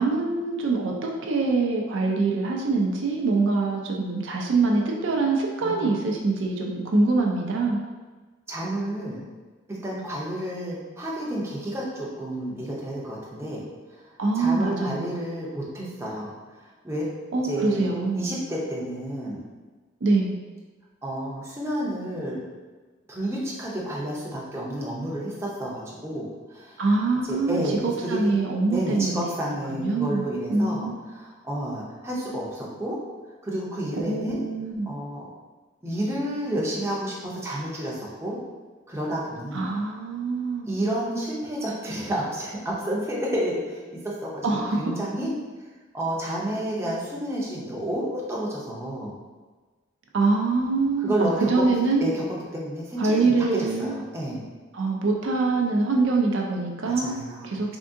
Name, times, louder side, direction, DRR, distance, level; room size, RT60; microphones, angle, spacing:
voice 1, 0.0-7.8 14.2-15.3 17.3-18.3 20.0-20.4 26.8-29.4 29.7-30.9 34.0-34.9 39.5-40.7 44.4-44.9 50.1-52.2 53.0-53.9 54.7-57.1 57.4-57.8, right 3 dB, 60° right, 0 dB, 0.4 m, -24 dB
voice 2, 5.6-6.0 8.5-9.2 9.7-13.6 14.3-17.1 17.4-19.4 21.0-22.4 23.1-26.8 27.3-28.2 28.7-33.0 33.4-34.4 34.8-35.3 35.8-38.4 38.9-39.7 40.6-44.5 44.8-45.3 45.9-49.1 51.0-51.6 52.0-52.2 52.5-54.4 56.8-57.6, right 1 dB, 15° right, -5 dB, 0.6 m, -30 dB
3.6 x 3.4 x 2.6 m, 1.3 s
head